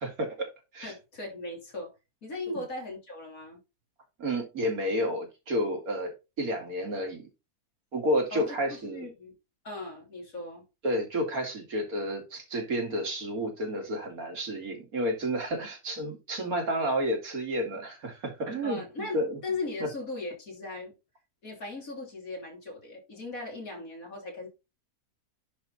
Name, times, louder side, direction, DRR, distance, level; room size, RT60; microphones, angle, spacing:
voice 1, 0.0-0.9 4.2-6.1 6.4-7.3 7.9-9.1 10.8-18.8 19.1-19.4 19.8-19.9, equal, 70° right, 2.9 m, -30 dB
voice 2, 0.8-1.9 2.2-3.6 8.3-9.3 9.6-10.6 18.6-20.9 21.4-24.5, left 2 dB, 65° left, 3.8 m, -38 dB
10.5 x 3.6 x 4.1 m
omnidirectional pair, 1.6 m